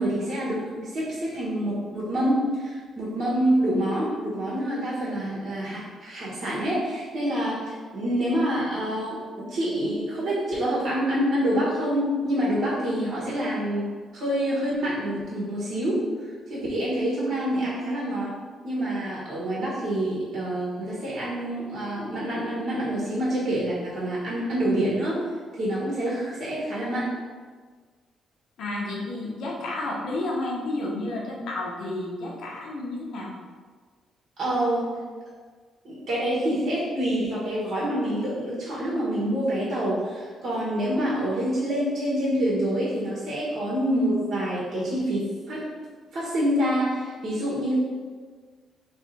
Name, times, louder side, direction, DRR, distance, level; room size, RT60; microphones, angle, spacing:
voice 1, 0.0-16.1 16.5-18.3 18.6-25.2 25.5-27.1 34.4-34.9 35.8-45.7 46.1-47.8, equal, 65° right, -7 dB, 1.4 m, -27 dB
voice 2, 28.6-33.3, left 2 dB, 75° left, -3 dB, 1.0 m, -31 dB
3.3 x 3.3 x 4.1 m, 1.5 s
cardioid pair, 90°, 0 cm